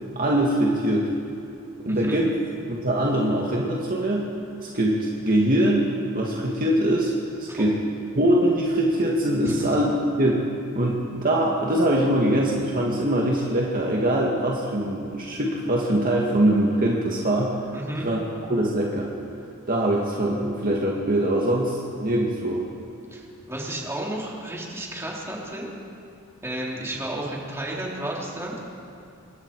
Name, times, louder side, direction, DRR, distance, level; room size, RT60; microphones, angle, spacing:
voice 1, 0.2-1.1 1.8-2.4 2.7-4.3 4.6-5.9 6.1-7.1 7.4-7.8 8.2-10.4 10.8-17.5 18.0-19.1 19.7-22.7, right 1 dB, 40° right, -2 dB, 2.0 m, -23 dB
voice 2, 1.9-2.2 7.5-7.8 9.4-9.5 17.7-18.1 23.1-25.7 26.4-28.6, right 1 dB, 10° right, -3 dB, 3.6 m, -32 dB
26.5 x 22.0 x 4.8 m, 2.5 s
head